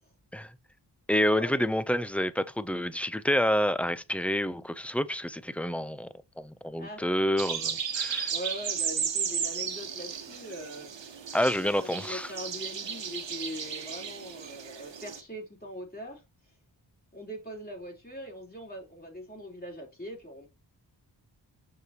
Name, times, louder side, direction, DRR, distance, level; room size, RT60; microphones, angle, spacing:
voice 1, 1.1-6.1 6.4-8.3 11.3-12.3, equal, 5° left, 0.7 m, -28 dB
sound 1, 7.4-15.2, right 7 dB, 75° right, 1.3 m, -34 dB
voice 2, 8.3-11.1 11.5-16.2 17.1-20.5, equal, 20° left, 4.2 m, -41 dB
6.7 x 6.6 x 3.0 m
cardioid pair, 60°, 44 cm